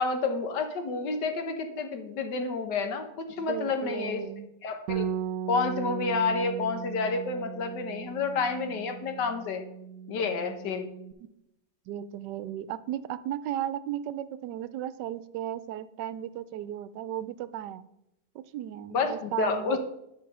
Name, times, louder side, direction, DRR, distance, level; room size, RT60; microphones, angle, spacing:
voice 1, 0.0-4.2 4.6-5.1 5.5-9.6 10.1-10.9 18.9-19.8, left 4 dB, 80° left, 7 dB, 1.7 m, -29 dB
voice 2, 3.4-4.5 11.9-17.8 18.3-19.8, right 11 dB, 85° right, 15 dB, 1.2 m, -35 dB
Bass guitar, 4.9-11.1, right 8 dB, 70° right, 1.0 m, -37 dB
10.5 x 5.2 x 5.5 m, 0.86 s
omnidirectional pair, 1.8 m